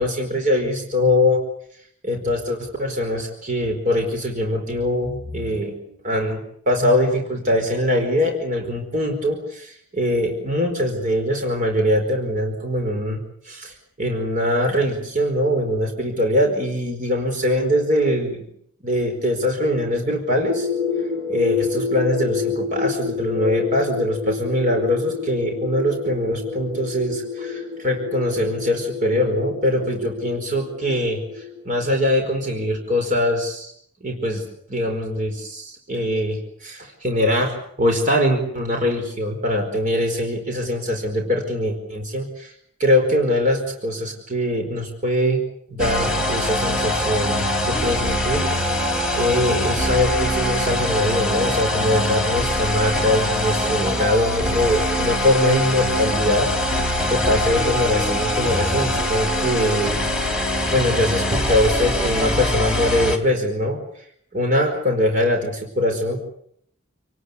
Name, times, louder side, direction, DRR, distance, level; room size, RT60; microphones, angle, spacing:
voice 1, 0.0-1.4 2.0-13.2 13.4-18.4 18.8-20.7 21.3-33.7 34.0-42.5 42.8-45.4 45.7-48.7 49.2-56.8 57.1-60.0 60.7-63.8 64.3-66.2, left 1 dB, 40° right, 3 dB, 4.8 m, -22 dB
sound 1, 20.4-32.1, left 5 dB, 85° right, 4.2 m, -29 dB
sound 2, 45.8-63.2, left 1 dB, 5° right, 3.6 m, -23 dB
28.5 x 19.5 x 8.2 m, 0.69 s
head